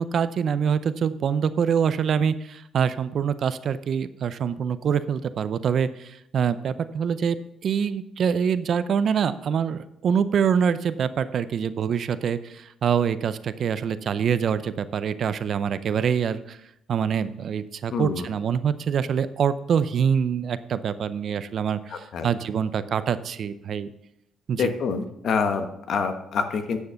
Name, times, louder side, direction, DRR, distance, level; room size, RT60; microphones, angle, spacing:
voice 1, 0.0-7.4 7.6-16.6 16.9-23.9 24.5-24.7, right 7 dB, 60° right, 14 dB, 0.5 m, -25 dB
voice 2, 17.9-18.3 21.9-22.3 24.6-26.8, left 5 dB, 65° left, 7 dB, 1.2 m, -26 dB
9.7 x 6.5 x 5.7 m, 0.80 s
cardioid pair, 90°, 0 cm